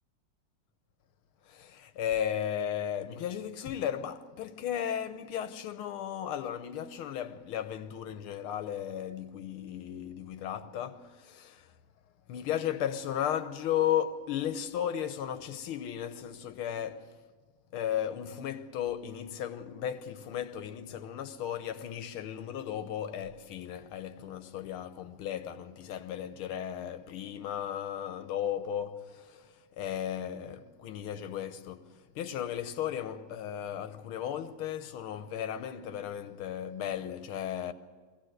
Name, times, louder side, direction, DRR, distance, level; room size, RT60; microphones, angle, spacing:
voice 1, 1.5-11.7 12.3-17.2 17.7-37.7, left 10 dB, 80° left, 1.8 m, -35 dB
22.0 x 16.5 x 8.0 m
omnidirectional pair, 2.3 m